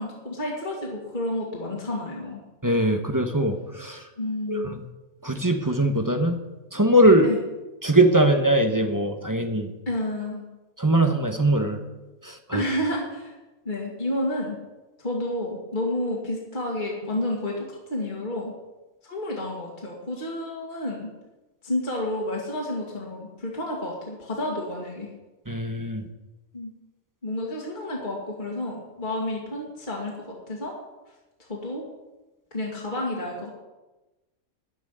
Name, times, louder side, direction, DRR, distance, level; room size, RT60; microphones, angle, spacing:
voice 1, 0.0-2.4 4.2-4.8 7.2-7.4 9.9-10.5 12.5-13.3 13.6-14.6 15.0-17.6 17.9-18.5 19.0-21.1 21.6-25.1 26.5-26.7 27.2-30.2 30.5-30.7 31.4-31.8 32.5-33.5, left 1 dB, 35° left, -2 dB, 2.5 m, -30 dB
voice 2, 2.6-4.0 4.5-4.8 5.2-6.4 6.7-7.3 7.8-9.7 10.8-11.8 12.2-12.6 25.5-26.0, right 1 dB, 15° right, 5 dB, 1.0 m, -21 dB
14.0 x 6.1 x 10.0 m, 1.1 s
omnidirectional pair, 1.5 m